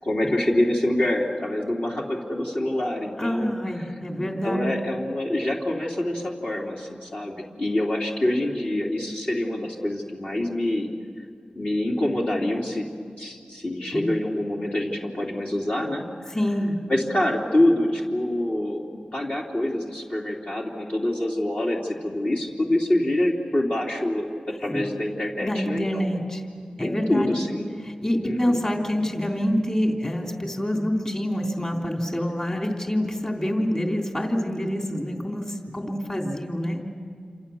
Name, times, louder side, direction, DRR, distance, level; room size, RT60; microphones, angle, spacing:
voice 1, 0.0-3.5 3.8-3.9 4.2-10.9 11.5-12.9 13.2-16.1 16.9-24.2 24.6-26.0 26.8-27.7 28.2-28.6, left 1 dB, 55° left, -3 dB, 3.3 m, -26 dB
voice 2, 3.2-4.7 13.9-14.1 16.3-16.7 24.6-24.8 25.4-26.4 26.8-27.3 27.8-36.9, equal, 25° left, 1 dB, 3.4 m, -26 dB
28.5 x 27.5 x 7.2 m, 2.2 s
wide cardioid pair, 65°, 3 cm